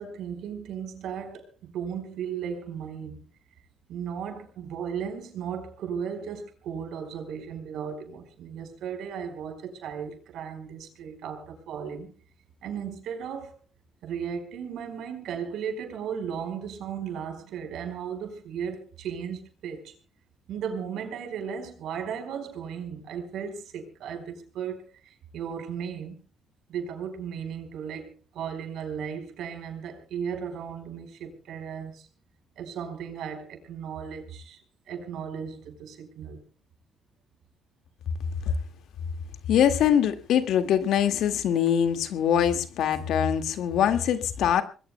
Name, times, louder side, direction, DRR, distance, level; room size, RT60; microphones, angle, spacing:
voice 1, 0.0-3.3 3.9-12.1 12.6-13.5 14.0-19.9 20.5-24.9 25.3-26.2 26.7-32.1 32.6-34.6 34.9-36.4, right 7 dB, 80° right, 4.8 m, -35 dB
voice 2, 39.5-44.6, left 9 dB, 80° left, 1.9 m, -23 dB
26.5 x 20.5 x 2.2 m
cardioid pair, 90°, 0 cm